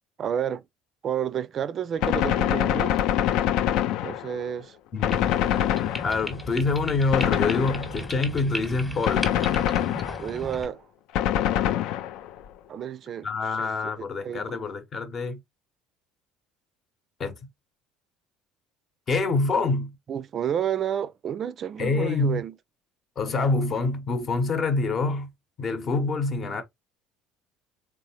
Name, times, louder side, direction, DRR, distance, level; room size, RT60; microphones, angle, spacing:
voice 1, 0.2-0.6 1.0-3.0 4.0-4.8 10.2-10.9 12.7-13.6 14.2-14.6 20.1-22.5, right 9 dB, 45° right, 0.4 m, -30 dB
Gunshot gunfire, 2.0-4.5 5.0-6.4 7.1-8.2 9.1-10.4 11.2-12.4, left 11 dB, 60° left, 0.4 m, -25 dB
voice 2, 4.9-5.3 6.0-9.3 13.2-15.4 17.2-17.4 19.1-20.0 21.8-22.4 23.2-25.3 25.6-26.6, left 3 dB, 40° left, 0.9 m, -26 dB
sound 1, 5.1-10.7, equal, 5° left, 1.0 m, -36 dB
3.6 x 3.6 x 2.8 m
figure-of-eight pair, 60°, 0 cm